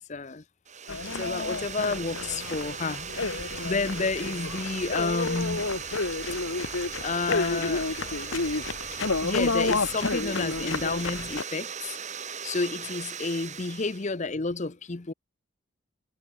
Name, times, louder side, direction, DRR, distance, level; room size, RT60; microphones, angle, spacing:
voice 1, 0.1-0.4 1.0-5.7 6.5-6.6 7.0-8.1 8.5-8.6 9.2-12.0 12.4-15.1, left 3 dB, 35° left, 0.7 m, -31 dB
sound 1, 0.6-14.1, right 7 dB, 35° right, 4.7 m, -38 dB
sound 2, 0.9-11.4, left 3 dB, 70° left, 1.5 m, -30 dB
sound 3, 3.2-8.9, equal, 70° right, 6.1 m, -56 dB
head